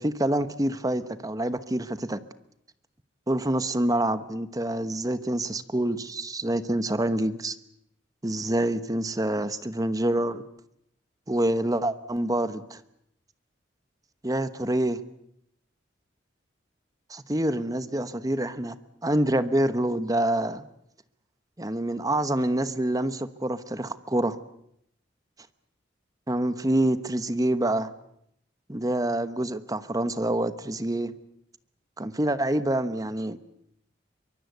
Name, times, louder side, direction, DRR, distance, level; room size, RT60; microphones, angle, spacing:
voice 1, 0.0-2.2 3.3-7.5 8.2-10.4 11.3-12.8 14.2-15.0 17.1-18.8 19.0-20.7 21.6-24.4 26.3-27.9 28.7-31.1 32.0-33.4, right 1 dB, 20° right, 13 dB, 1.1 m, -26 dB
24.0 x 23.5 x 8.1 m, 0.74 s
head